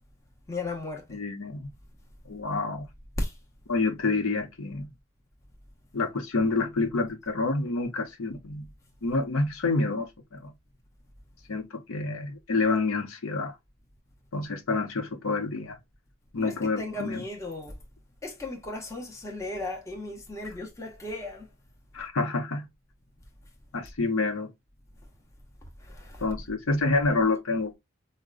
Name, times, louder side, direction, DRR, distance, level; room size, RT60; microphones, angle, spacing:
voice 1, 0.5-1.2 3.2-3.4 16.4-17.8 18.2-21.5 25.6-26.3, left 2 dB, 15° left, 0.7 m, -36 dB
voice 2, 1.1-1.7 2.3-2.9 3.7-4.9 5.9-8.7 9.0-10.5 11.5-13.6 14.3-15.8 16.3-17.2 21.9-22.7 23.7-24.5 26.2-27.7, left 3 dB, 85° left, 0.8 m, -28 dB
4.9 x 2.2 x 2.4 m
head